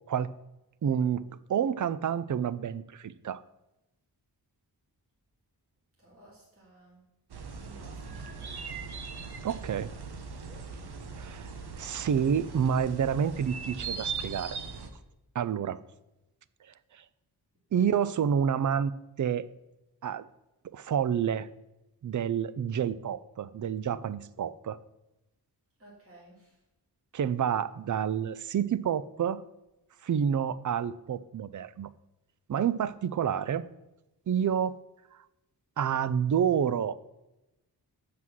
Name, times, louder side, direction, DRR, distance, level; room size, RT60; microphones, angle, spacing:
voice 1, 0.8-1.2 1.5-3.4 9.4-9.9 11.2-11.5 11.8-14.6 15.3-15.8 17.7-18.9 19.2-19.5 20.0-20.3 20.7-21.5 22.0-24.8 27.1-29.4 30.0-31.9 32.5-33.6 34.3-34.7 35.8-36.9, right 8 dB, 50° right, 16 dB, 0.5 m, -28 dB
voice 2, 6.0-7.0 7.6-8.9 10.4-10.7 25.8-26.6, right 2 dB, 35° right, -7 dB, 2.6 m, -55 dB
sound 1, 7.3-14.9, right 5 dB, 70° right, 1.0 m, -40 dB
7.6 x 6.0 x 6.1 m, 0.96 s
wide cardioid pair, 135°, 40 cm